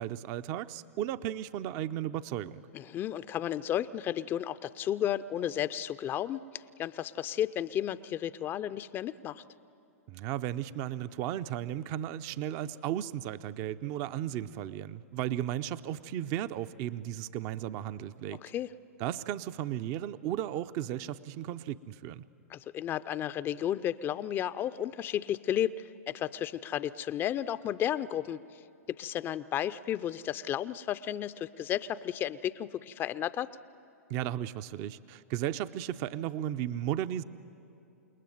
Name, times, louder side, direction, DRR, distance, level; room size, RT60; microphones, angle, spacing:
voice 1, 0.0-2.6 10.1-18.4 19.0-22.2 34.1-37.2, right 11 dB, 40° right, 13 dB, 0.6 m, -35 dB
voice 2, 2.7-9.4 18.4-18.7 22.5-28.4 28.9-33.5, left 11 dB, 25° left, 14 dB, 0.5 m, -33 dB
28.5 x 20.0 x 9.4 m, 2.7 s
hypercardioid pair, 110°, 8 cm